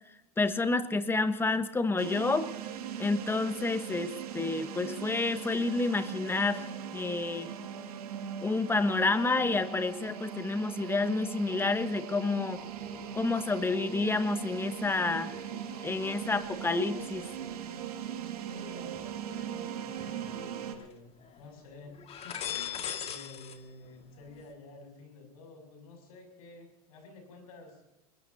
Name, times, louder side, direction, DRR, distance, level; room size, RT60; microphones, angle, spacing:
voice 1, 0.4-2.5 3.0-7.5 8.4-12.6 13.1-15.3 15.8-17.2, left 3 dB, 10° left, 11 dB, 1.2 m, -29 dB
sound 1, 2.0-20.7, right 8 dB, 75° right, 2.3 m, -40 dB
sound 2, 12.6-13.4 13.8-19.4 20.0-20.9 21.2-21.5 21.9-23.6 23.8-24.5, left 9 dB, 30° left, 2.1 m, -44 dB
voice 2, 18.5-22.0 22.2-27.8, left 3 dB, 70° left, 4 dB, 7.3 m, -51 dB
23.0 x 21.0 x 2.8 m, 0.90 s
hypercardioid pair, 105°, 20 cm